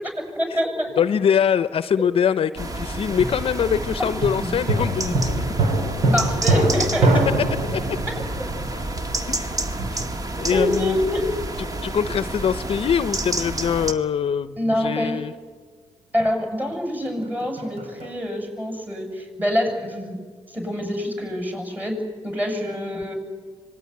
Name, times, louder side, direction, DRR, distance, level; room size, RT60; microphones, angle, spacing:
voice 1, 0.4-0.9 4.4-4.5 6.1-7.2 10.5-11.3 14.6-15.3 16.1-20.2 20.5-23.1, left 1 dB, 15° right, 4 dB, 7.4 m, -25 dB
voice 2, 1.0-5.3 9.3-9.5 9.9-10.0 10.4-11.0 11.6-15.3, left 8 dB, 60° left, 14 dB, 0.7 m, -23 dB
sound 1, 2.6-13.9, right 2 dB, 35° right, 1.7 m, -29 dB
sound 2, 3.2-9.6 17.1-18.2, right 2 dB, 70° right, 3.8 m, -24 dB
25.0 x 19.5 x 9.6 m, 1.5 s
cardioid pair, 80°, 11 cm